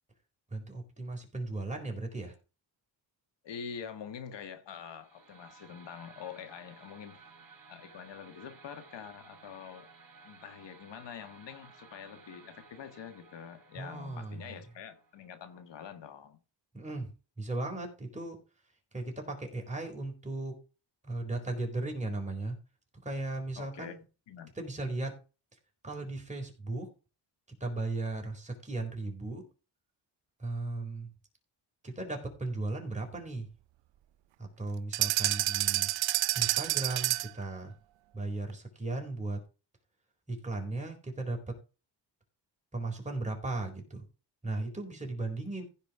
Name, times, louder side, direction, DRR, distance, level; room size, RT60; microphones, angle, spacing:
voice 1, 0.5-2.3 13.7-14.6 16.7-17.1 17.4-18.4 18.9-20.6 21.0-22.6 23.0-24.0 24.5-25.1 25.8-26.9 27.6-29.4 30.4-31.1 31.8-33.5 34.4-35.9 36.3-37.7 38.1-39.4 40.3-41.5 42.7-44.0 44.4-45.6, right 2 dB, 15° right, 4.2 m, -36 dB
voice 2, 3.4-7.2 7.7-9.9 10.2-16.4 23.6-23.9 24.3-24.5, left 7 dB, 75° left, 1.7 m, -45 dB
sound 1, 4.9-16.0, right 4 dB, 50° right, 3.9 m, -57 dB
sound 2, 34.9-37.4, right 16 dB, 90° right, 0.6 m, -29 dB
15.5 x 5.2 x 4.9 m
cardioid pair, 115°, 43 cm